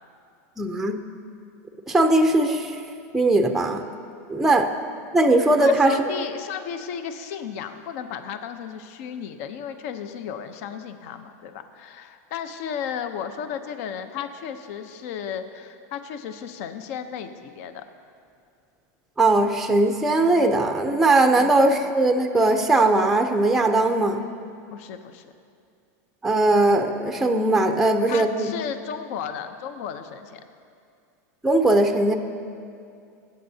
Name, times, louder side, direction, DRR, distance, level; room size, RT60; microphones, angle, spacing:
voice 1, 0.6-1.0 1.9-2.8 3.1-3.8 4.3-4.7 5.1-6.0 19.2-24.3 26.2-28.5 31.4-32.1, right 2 dB, 5° right, 5 dB, 0.5 m, -19 dB
voice 2, 5.6-17.8 21.4-21.5 24.7-25.3 28.1-30.4, left 8 dB, 60° left, 9 dB, 0.7 m, -34 dB
24.0 x 8.0 x 2.8 m, 2.4 s
supercardioid pair, 150°, 9 cm